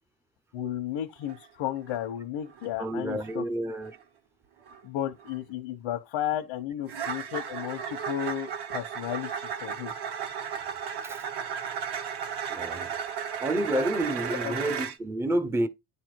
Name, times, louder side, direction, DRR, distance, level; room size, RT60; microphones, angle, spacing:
voice 1, 0.5-3.4 4.8-9.9 14.4-14.6, left 11 dB, 85° left, 1.1 m, -33 dB
sound 1, 1.2-1.4 1.8-2.1 2.5-2.8 3.2-3.4 3.8-4.0 4.7-4.8 5.2-5.4 6.9-15.0, right 7 dB, 60° right, 1.4 m, -35 dB
voice 2, 2.8-4.0 11.0-11.2 12.5-12.9 13.4-15.7, right 1 dB, 5° right, 0.5 m, -29 dB
9.7 x 3.5 x 4.6 m
cardioid pair, 155°, 46 cm